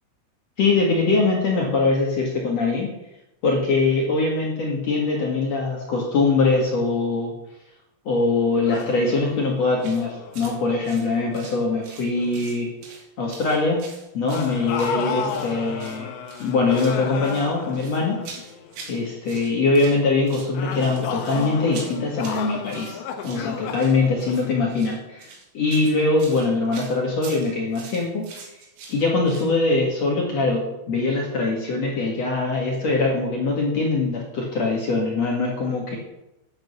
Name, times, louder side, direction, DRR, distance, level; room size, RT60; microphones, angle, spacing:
voice 1, 0.6-2.9 3.4-7.3 8.1-12.7 13.2-13.8 14.1-16.1 16.4-18.2 18.9-25.3 25.5-28.3 28.9-36.0, left 3 dB, 60° left, -1 dB, 1.8 m, -22 dB
sound 1, 8.7-11.8 12.1-12.5 14.3-18.9 20.5-25.1, left 7 dB, 75° left, 3.0 m, -33 dB
sound 2, 9.8-10.0 10.3-10.6 10.8-12.1 12.3-13.0 13.3-15.5 15.8-16.0 16.3-17.0 17.2-19.0 19.3-20.0 20.3-29.5, right 5 dB, 70° right, 4.3 m, -43 dB
10.5 x 8.7 x 6.8 m, 0.89 s
omnidirectional pair, 5.8 m